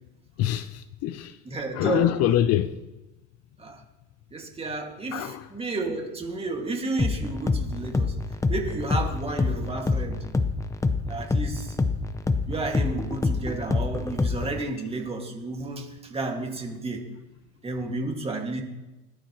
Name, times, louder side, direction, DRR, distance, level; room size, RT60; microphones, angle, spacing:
voice 1, 0.4-1.3 1.7-2.7 5.1-5.4, left 12 dB, 50° left, 0.6 m, -24 dB
voice 2, 1.4-2.1 3.6-3.8 4.3-8.2 8.5-10.2 11.1-11.8 12.5-17.1 17.6-18.6, right 3 dB, 20° right, 2.1 m, -32 dB
sound 1, 7.0-14.7, left 3 dB, 10° left, 0.6 m, -27 dB
19.5 x 11.5 x 3.0 m
cardioid pair, 130°, 32 cm